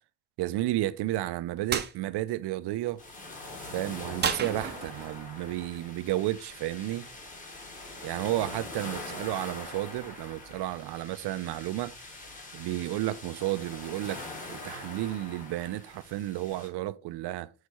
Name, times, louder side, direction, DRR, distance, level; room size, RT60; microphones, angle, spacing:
voice 1, 0.4-3.0 3.7-7.1 8.0-12.0 12.5-17.5, right 15 dB, 85° right, 0.7 m, -32 dB
sound 1, 1.7-1.9 4.2-5.2, right 7 dB, 25° right, 0.6 m, -31 dB
sound 2, 3.0-16.7, left 2 dB, 20° left, 1.4 m, -43 dB
6.5 x 4.1 x 4.7 m
cardioid pair, 170°, 39 cm